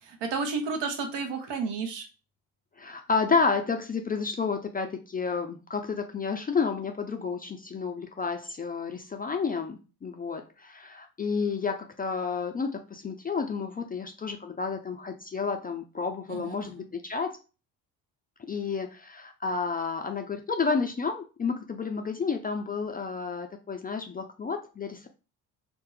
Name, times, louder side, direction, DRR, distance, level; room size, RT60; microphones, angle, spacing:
voice 1, 0.0-2.1 16.3-16.7, right 4 dB, 65° right, 5 dB, 1.0 m, -32 dB
voice 2, 2.8-17.4 18.5-25.1, left 5 dB, 20° left, 4 dB, 0.4 m, -30 dB
2.6 x 2.0 x 3.9 m, 0.32 s
hypercardioid pair, 60°, 46 cm